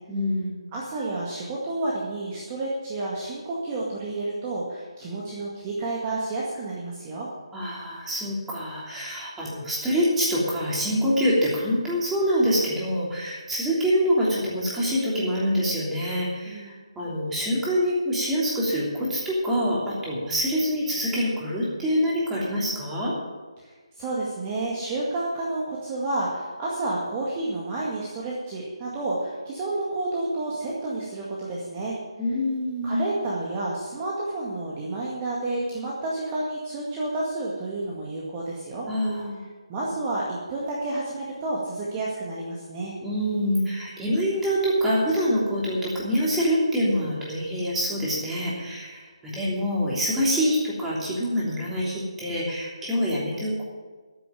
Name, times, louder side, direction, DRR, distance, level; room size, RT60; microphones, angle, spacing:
voice 1, 0.1-0.7 7.5-23.1 32.2-33.1 38.9-39.4 43.0-53.6, equal, 5° right, -6 dB, 3.1 m, -25 dB
voice 2, 0.7-7.3 16.5-16.8 24.0-32.0 32.8-38.9 39.7-42.9, right 2 dB, 20° right, -5 dB, 2.0 m, -30 dB
13.5 x 7.0 x 9.1 m, 1.4 s
figure-of-eight pair, 155°, 3 cm